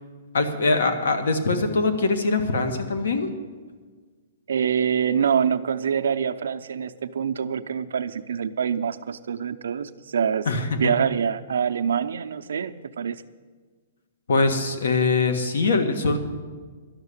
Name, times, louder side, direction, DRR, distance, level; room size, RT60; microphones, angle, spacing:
voice 1, 0.3-3.3 10.4-10.9 14.3-16.2, left 3 dB, 90° left, 7 dB, 1.5 m, -22 dB
voice 2, 4.5-10.5 10.8-13.2, right 7 dB, 90° right, 10 dB, 0.6 m, -25 dB
12.0 x 6.5 x 9.7 m, 1.5 s
hypercardioid pair, 175°, 0 cm